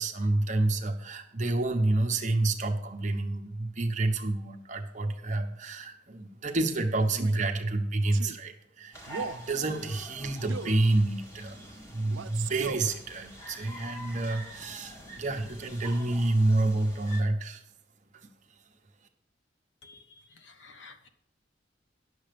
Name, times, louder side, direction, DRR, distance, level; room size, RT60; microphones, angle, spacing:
voice 1, 0.0-11.6 11.9-17.6, right 2 dB, 40° right, 5 dB, 1.0 m, -28 dB
Male speech man speaking, 7.1-7.4 8.1-8.4 9.1-9.5 10.5-10.8 12.1-12.9, right 5 dB, 85° right, 0.5 m, -38 dB
sound 1, 8.9-17.2, right 1 dB, 15° left, 1.7 m, -46 dB
voice 2, 20.4-21.1, left 4 dB, 70° left, 7 dB, 1.1 m, -51 dB
10.5 x 7.2 x 5.2 m, 0.76 s
head